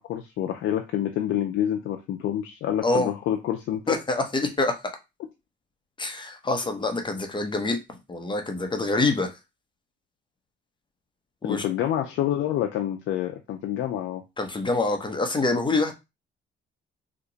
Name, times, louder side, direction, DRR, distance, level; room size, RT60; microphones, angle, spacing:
voice 1, 0.0-4.0 11.4-14.2, left 11 dB, 80° left, 0.5 m, -27 dB
voice 2, 2.8-3.1 3.9-4.8 6.0-7.8 8.1-9.3 11.4-11.6 14.4-15.9, left 2 dB, 25° left, 0.8 m, -25 dB
2.9 x 2.2 x 3.9 m
cardioid pair, 90°, 20 cm